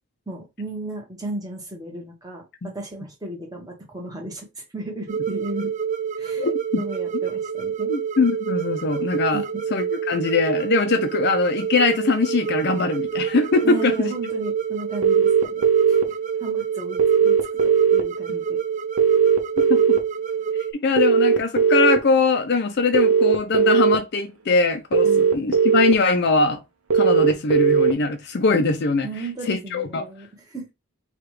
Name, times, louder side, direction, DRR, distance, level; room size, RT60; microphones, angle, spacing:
voice 1, 0.3-5.7 6.2-6.5 6.8-7.9 9.3-9.4 13.6-18.6 25.0-25.3 29.0-30.7, right 2 dB, 15° right, 1.1 m, -35 dB
sound 1, 5.1-20.7, right 7 dB, 35° right, 0.3 m, -28 dB
voice 2, 6.4-6.8 7.9-9.4 9.7-13.9 19.6-20.0 20.7-25.1 25.3-26.6 26.9-29.1 29.5-30.0, left 4 dB, 50° left, 0.5 m, -22 dB
sound 2, 15.0-16.0 17.0-18.0 19.0-20.0 21.0-22.0 22.9-24.0 24.9-25.9 26.9-27.9, right 6 dB, 70° right, 0.7 m, -17 dB
4.8 x 2.4 x 3.1 m
head